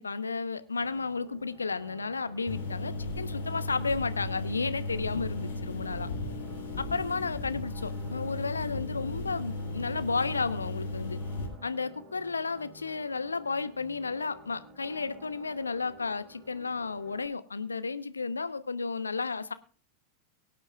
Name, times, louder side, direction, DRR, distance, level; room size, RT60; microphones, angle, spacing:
voice 1, 0.0-6.1 6.8-11.2 11.6-19.5, left 4 dB, 75° left, 13 dB, 0.9 m, -33 dB
sound 1, 0.8-17.3, right 1 dB, 20° right, 5.0 m, -53 dB
sound 2, 2.5-11.5, left 2 dB, 60° left, 3.7 m, -36 dB
23.5 x 8.6 x 2.4 m, 0.40 s
figure-of-eight pair, 90°, 0 cm